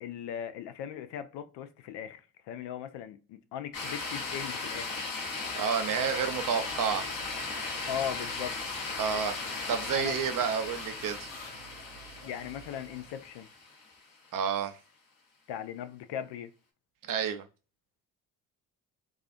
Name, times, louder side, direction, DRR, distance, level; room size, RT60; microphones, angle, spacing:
voice 1, 0.0-5.0 7.9-8.6 9.9-10.2 12.2-13.5 15.5-16.5, left 9 dB, 65° left, 0.5 m, -38 dB
sound 1, 3.7-14.0, left 3 dB, 45° left, 1.0 m, -37 dB
voice 2, 5.5-7.1 9.0-9.4 9.7-11.3 14.3-14.8 17.1-17.4, right 7 dB, 45° right, 0.5 m, -30 dB
sound 2, 5.9-13.3, right 2 dB, 80° left, 1.1 m, -51 dB
2.4 x 2.3 x 2.4 m
hypercardioid pair, 45°, 45 cm